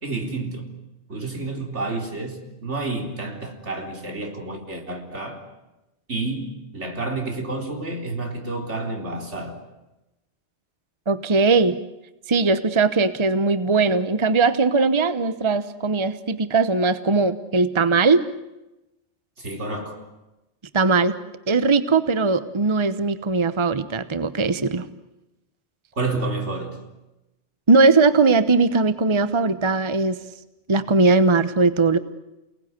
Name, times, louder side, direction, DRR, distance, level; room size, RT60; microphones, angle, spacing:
voice 1, 0.0-0.7 1.1-5.4 6.1-9.6 19.4-20.0 26.0-26.8, right 2 dB, 85° right, 2 dB, 4.3 m, -29 dB
voice 2, 11.1-11.8 12.3-18.2 20.7-21.2 21.5-24.8 27.7-30.2 30.7-32.0, right 3 dB, 30° right, 12 dB, 1.0 m, -19 dB
29.0 x 19.0 x 9.6 m, 0.98 s
omnidirectional pair, 1.2 m